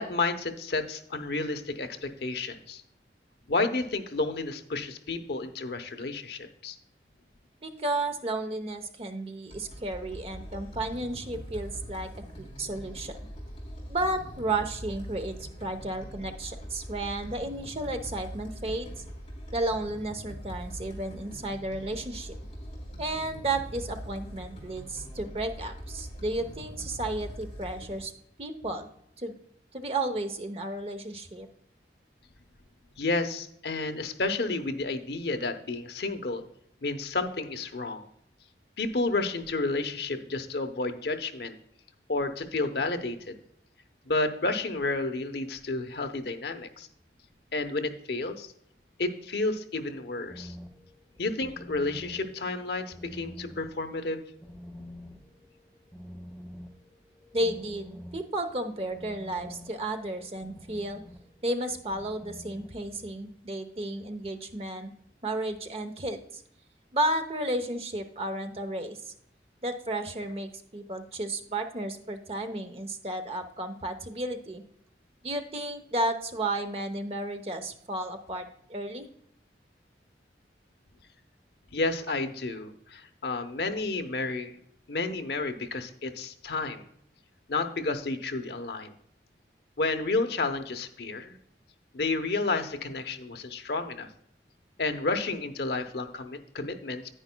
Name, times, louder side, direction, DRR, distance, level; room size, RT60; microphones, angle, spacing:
voice 1, 0.0-2.8 3.5-6.8 33.0-36.4 36.8-38.1 38.8-41.6 42.1-43.4 44.0-46.9 47.5-48.5 49.0-50.5 51.2-54.2 81.7-84.6 84.9-86.9 87.5-88.9 89.8-91.4 91.9-94.1 94.8-97.1, left 3 dB, 65° left, 7 dB, 0.8 m, -31 dB
voice 2, 7.6-12.1 12.4-13.2 13.9-18.9 19.5-22.3 23.0-28.1 28.4-28.9 29.2-29.3 29.7-31.5 57.3-61.0 61.4-64.9 65.2-66.4 66.9-69.1 69.6-74.6 75.2-79.1, right 1 dB, 35° right, 7 dB, 0.8 m, -33 dB
sound 1, 9.5-28.0, equal, 30° left, 3.2 m, -42 dB
sound 2, 50.3-63.0, equal, ahead, 0.9 m, -48 dB
10.0 x 9.5 x 2.2 m, 0.71 s
head